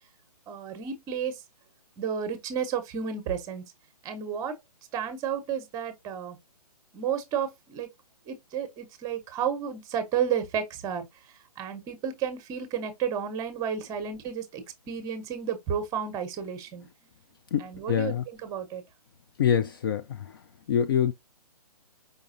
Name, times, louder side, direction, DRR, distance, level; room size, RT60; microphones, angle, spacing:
voice 1, 0.5-1.4 2.0-3.6 4.0-4.6 4.9-6.4 6.9-7.9 8.3-11.1 11.6-16.9 17.6-18.8, right 8 dB, 20° right, 0.9 m, -32 dB
voice 2, 17.5-18.2 19.4-20.2 20.7-21.1, left 8 dB, 35° left, 0.4 m, -25 dB
5.1 x 3.7 x 2.6 m
hypercardioid pair, 140°, 20 cm